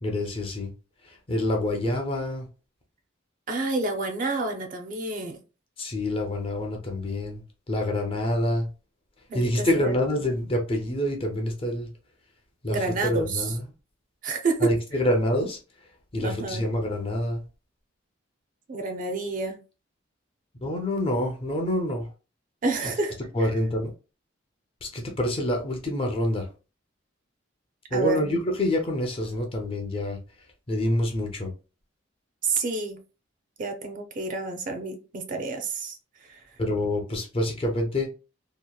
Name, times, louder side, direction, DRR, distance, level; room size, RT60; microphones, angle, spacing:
voice 1, 0.0-0.7 1.0-2.5 5.8-8.7 9.3-11.9 12.6-12.8 13.0-13.7 14.6-15.6 16.1-17.4 20.6-22.1 23.3-23.9 24.8-26.5 27.9-30.2 30.7-31.5 36.6-38.1, left 1 dB, 30° left, 0.4 m, -27 dB
voice 2, 3.5-5.4 9.3-9.9 12.7-13.5 14.2-14.7 16.2-16.6 18.7-19.6 22.6-23.2 27.9-28.2 32.4-33.0 33.6-36.0 36.3-36.4, right 3 dB, 40° right, 0.4 m, -29 dB
2.8 x 2.1 x 2.2 m
head